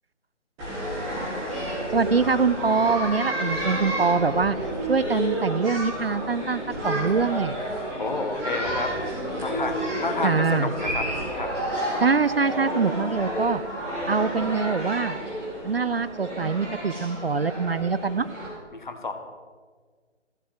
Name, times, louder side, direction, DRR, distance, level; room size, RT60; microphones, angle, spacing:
sound 1, 0.6-18.5, right 1 dB, 10° right, 2.2 m, -30 dB
voice 1, 1.7-4.6 4.9-7.6 10.2-10.7 12.0-13.6 14.1-15.2 15.6-18.3, right 5 dB, 55° right, 15 dB, 0.4 m, -24 dB
voice 2, 8.0-8.9 9.4-11.1 11.4-11.5 18.7-19.1, left 3 dB, 40° left, 6 dB, 1.4 m, -30 dB
14.5 x 6.8 x 7.4 m, 1.5 s
figure-of-eight pair, 155°, 35 cm